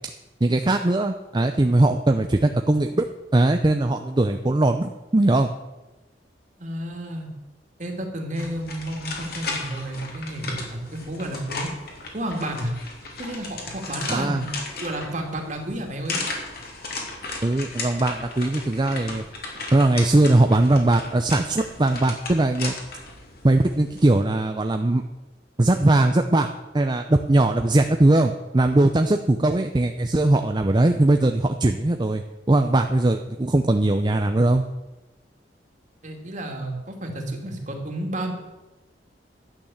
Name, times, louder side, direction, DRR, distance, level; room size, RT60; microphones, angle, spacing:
voice 1, 0.4-3.1 3.3-5.5 14.1-14.4 17.4-19.2 19.7-22.7 23.4-25.0 25.6-26.5 26.7-34.6, right 2 dB, 25° right, 6 dB, 0.6 m, -20 dB
voice 2, 6.6-7.3 7.8-11.7 12.1-12.7 13.2-14.5 14.8-16.2 36.0-38.3, right 1 dB, 45° right, 2 dB, 2.5 m, -31 dB
sound 1, 8.3-24.1, left 3 dB, 60° left, 2.8 m, -36 dB
12.0 x 9.0 x 7.1 m, 1.1 s
head